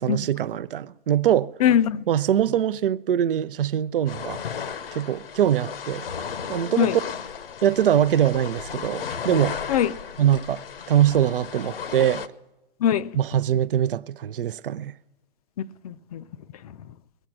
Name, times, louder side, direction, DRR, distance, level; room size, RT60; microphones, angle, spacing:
voice 1, 0.0-1.5 2.1-4.4 4.9-6.1 6.5-7.0 7.6-9.6 10.2-12.2 13.1-14.9, right 10 dB, 65° right, 0.6 m, -23 dB
voice 2, 1.6-2.1 6.8-7.0 9.7-9.9 12.8-13.1 15.6-16.2 16.6-16.9, left 9 dB, 40° left, 0.5 m, -22 dB
sound 1, 4.1-12.3, left 7 dB, 70° left, 0.9 m, -34 dB
21.5 x 9.1 x 6.0 m
figure-of-eight pair, 125°, 30 cm